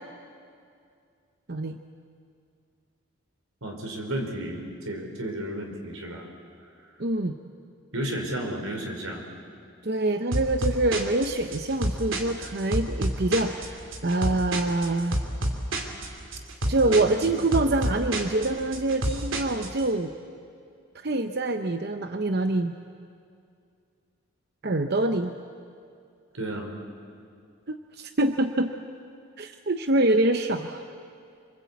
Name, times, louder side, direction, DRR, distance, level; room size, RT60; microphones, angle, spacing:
voice 1, 3.6-6.3 7.9-9.2 15.9-16.1 16.8-17.2 26.3-26.7, right 1 dB, 90° right, 2 dB, 4.8 m, -33 dB
voice 2, 7.0-7.3 9.8-15.2 16.7-20.1 21.0-22.7 24.6-25.3 27.7-28.7 29.4-30.8, right 2 dB, 50° right, 7 dB, 0.8 m, -25 dB
sound 1, 10.3-19.8, right 1 dB, 70° right, 2.8 m, -30 dB
26.5 x 25.0 x 8.4 m, 2.4 s
head